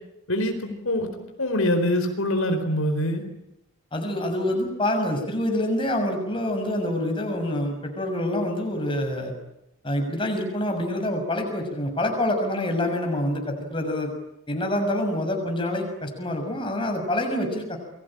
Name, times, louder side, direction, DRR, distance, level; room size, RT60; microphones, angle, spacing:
voice 1, 0.3-1.1 1.4-3.2, left 1 dB, 70° left, 6 dB, 4.5 m, -24 dB
voice 2, 3.9-9.3 9.8-14.1 14.5-17.8, left 1 dB, 20° left, 4 dB, 6.4 m, -26 dB
29.5 x 22.5 x 8.8 m, 0.85 s
head